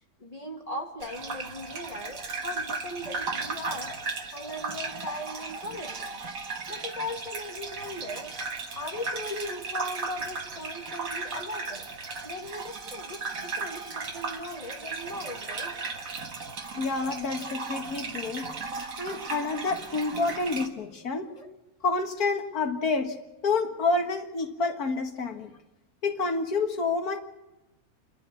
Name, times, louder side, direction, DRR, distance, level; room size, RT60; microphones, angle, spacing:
voice 1, 0.2-4.0 4.3-6.2 6.7-8.3 8.7-11.9 12.2-15.7 21.4-21.5, left 1 dB, 25° left, 2 dB, 2.4 m, -38 dB
Gurgling / Bathtub (filling or washing), 1.0-20.7, right 4 dB, 65° right, 1.9 m, -36 dB
voice 2, 16.7-18.5 19.0-21.3 21.8-23.2 23.4-25.5 26.0-27.2, left 3 dB, 80° left, 5 dB, 2.1 m, -28 dB
29.5 x 11.5 x 8.4 m, 1.0 s
omnidirectional pair, 1.6 m